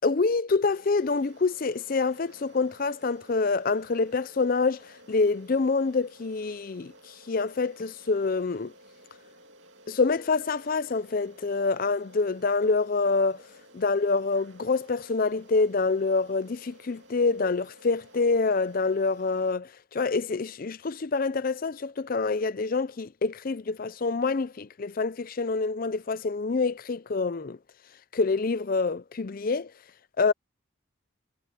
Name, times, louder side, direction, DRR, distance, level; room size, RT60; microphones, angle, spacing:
voice 1, 0.0-4.8 5.1-6.9 7.3-8.7 9.9-13.4 13.7-27.6 28.1-29.7 30.2-30.3, left 4 dB, 40° left, 0.5 m, -26 dB
sound 1, 0.7-19.5, right 1 dB, 60° right, 2.3 m, -54 dB
head